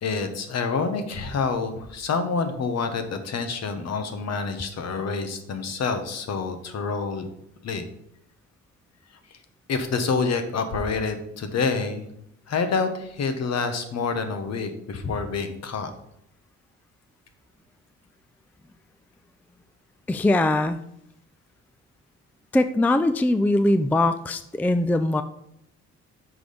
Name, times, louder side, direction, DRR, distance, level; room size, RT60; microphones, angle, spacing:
voice 1, 0.0-7.3 7.6-7.8 9.7-12.1 12.5-15.9, left 4 dB, 60° left, 7 dB, 1.2 m, -27 dB
voice 2, 20.1-20.8 22.5-25.2, left 2 dB, 5° left, 10 dB, 0.4 m, -21 dB
6.2 x 4.9 x 5.3 m, 0.77 s
cardioid pair, 90°, 30 cm